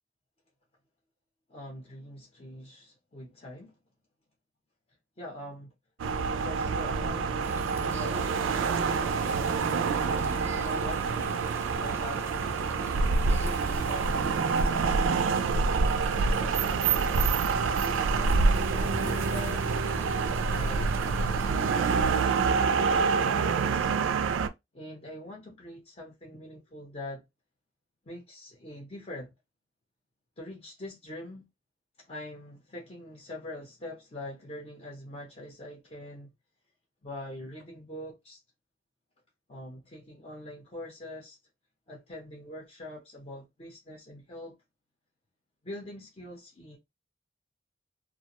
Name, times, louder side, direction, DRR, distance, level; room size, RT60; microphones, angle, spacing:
voice 1, 1.5-3.7 5.2-5.7 6.3-8.7 10.0-11.4 11.8-15.7 16.1-18.5 18.7-19.8 20.5-23.9 24.7-27.2 28.0-29.3 30.4-31.4 32.0-36.3 37.0-38.4 39.5-41.4 41.9-44.6 45.6-46.8, left 1 dB, 35° left, 0.6 m, -44 dB
sound 1, 6.0-24.5, right 4 dB, 85° right, 0.4 m, -27 dB
sound 2, 7.4-22.2, right 2 dB, 15° right, 0.4 m, -42 dB
2.4 x 2.1 x 2.9 m
head